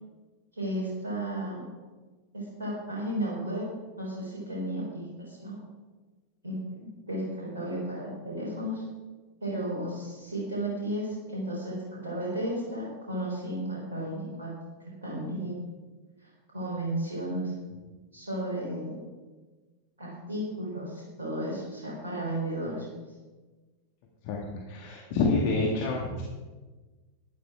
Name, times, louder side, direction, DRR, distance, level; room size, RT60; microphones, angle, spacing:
voice 1, 0.5-1.6 2.3-3.6 4.0-5.6 6.4-8.8 9.4-14.5 15.0-15.5 16.2-17.5 18.1-18.9 20.0-22.9, right 1 dB, 70° right, -5 dB, 3.7 m, -34 dB
voice 2, 24.2-26.2, left 3 dB, 50° left, -1 dB, 1.9 m, -28 dB
12.5 x 10.5 x 4.8 m, 1.3 s
figure-of-eight pair, 90°, 0 cm